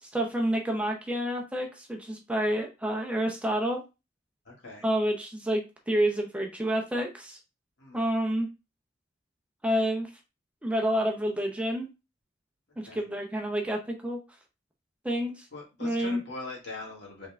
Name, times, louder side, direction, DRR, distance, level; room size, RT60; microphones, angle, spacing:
voice 1, 0.0-3.8 4.8-7.4 7.9-8.5 9.6-10.1 10.6-11.9 12.8-14.2 15.0-15.5 15.8-16.2, equal, 5° right, 2 dB, 0.5 m, -29 dB
voice 2, 4.5-4.9 7.8-8.1 12.8-13.0 15.5-17.3, left 2 dB, 60° left, -2 dB, 1.9 m, -42 dB
5.2 x 3.5 x 2.3 m, 0.27 s
head